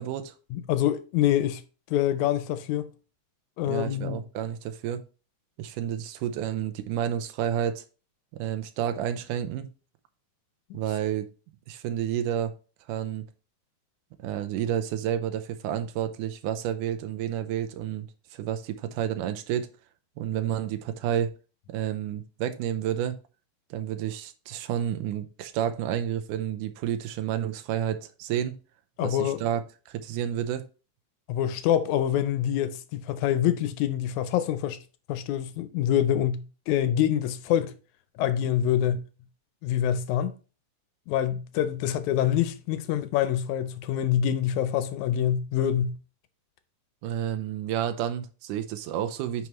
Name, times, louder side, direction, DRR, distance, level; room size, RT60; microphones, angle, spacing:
voice 1, 0.0-0.3 3.7-5.0 5.6-7.8 8.3-9.7 10.7-11.3 11.7-12.5 12.9-13.3 14.2-19.7 20.2-21.3 21.7-23.2 23.7-28.6 29.0-29.6 29.9-30.7 47.0-49.5, right 10 dB, 80° right, 2.2 m, -30 dB
voice 2, 0.5-1.6 1.9-2.9 3.6-4.2 29.0-29.4 31.3-34.8 35.1-37.7 38.2-39.0 39.6-40.3 41.1-46.0, left 10 dB, 80° left, 1.8 m, -26 dB
9.4 x 4.7 x 3.0 m
omnidirectional pair, 3.7 m